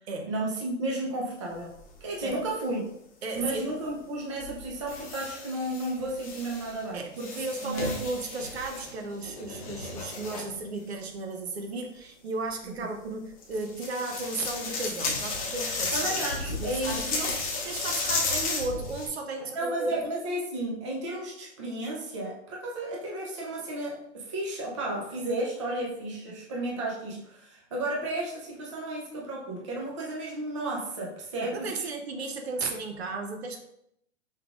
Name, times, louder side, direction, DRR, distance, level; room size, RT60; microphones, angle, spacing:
voice 1, 0.3-1.7 2.0-2.9 3.4-7.0 7.6-7.9 12.8-12.9 15.9-17.0 19.5-31.9, right 1 dB, 25° right, -3 dB, 0.7 m, -33 dB
sound 1, 1.5-2.3 3.3-3.5 4.4-6.8 7.2-10.5 13.4-19.1, left 3 dB, 30° left, 0.8 m, -33 dB
voice 2, 3.2-3.8 6.9-16.1 16.6-20.1 31.4-33.6, right 3 dB, 55° right, 4 dB, 0.8 m, -34 dB
5.5 x 3.5 x 2.4 m, 0.75 s
hypercardioid pair, 175°, 37 cm